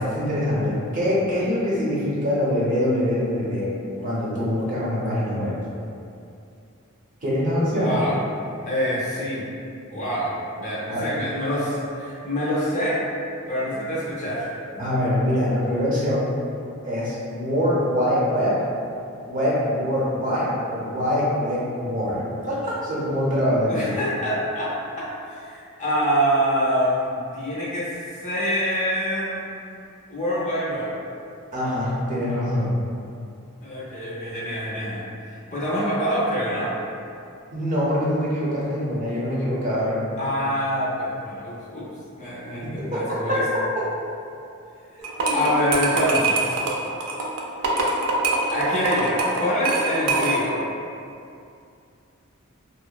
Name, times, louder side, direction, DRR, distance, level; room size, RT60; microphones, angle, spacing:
voice 1, 0.0-3.7 4.0-5.5 7.2-7.9 10.9-11.0 14.8-16.3 16.8-18.5 19.2-23.9 31.5-32.7 37.5-40.2 42.8-43.0 45.2-45.5, equal, 35° right, -8 dB, 0.6 m, -24 dB
voice 2, 7.7-8.2 8.7-9.5 9.9-13.0 13.5-14.5 23.7-24.7 25.0-28.0 28.2-29.4 30.1-30.9 33.6-36.7 40.2-41.9 42.2-43.4 44.9-46.6 48.5-50.6, equal, 35° left, -8 dB, 0.5 m, -25 dB
sound 1, 45.0-50.6, right 2 dB, 90° right, 0.4 m, -24 dB
2.8 x 2.0 x 2.2 m, 2.5 s
head